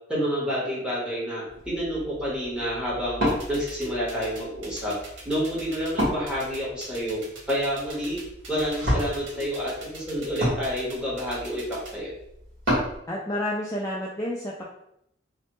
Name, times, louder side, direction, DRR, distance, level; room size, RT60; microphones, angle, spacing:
voice 1, 0.1-4.9 5.2-7.2 7.5-8.2 8.5-11.6 11.9-12.1, equal, 5° right, -7 dB, 1.1 m, -29 dB
Wood, 1.5-13.0, equal, 50° right, 1.4 m, -32 dB
sound 1, 3.3-11.9, right 3 dB, 85° right, 0.9 m, -43 dB
voice 2, 13.1-14.7, left 1 dB, 15° left, -4 dB, 0.3 m, -30 dB
3.1 x 2.1 x 3.0 m, 0.78 s
head